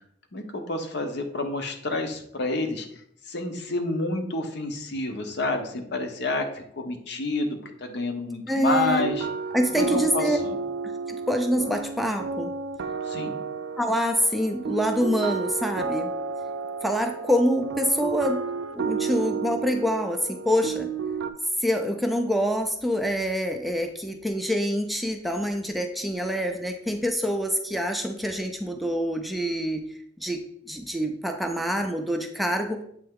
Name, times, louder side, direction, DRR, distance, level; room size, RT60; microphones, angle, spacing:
voice 1, 0.3-2.9 3.3-9.3 9.7-10.5 13.1-13.4, left 2 dB, 65° left, 5 dB, 0.8 m, -29 dB
voice 2, 8.5-9.1 9.5-10.4 11.3-12.5 13.8-16.1 16.8-18.4 18.7-20.9 21.6-29.8 30.2-30.4 30.7-32.8, equal, ahead, 4 dB, 0.4 m, -26 dB
sound 1, 8.8-21.3, right 4 dB, 80° right, 0.4 m, -31 dB
7.7 x 3.3 x 3.6 m, 0.69 s
head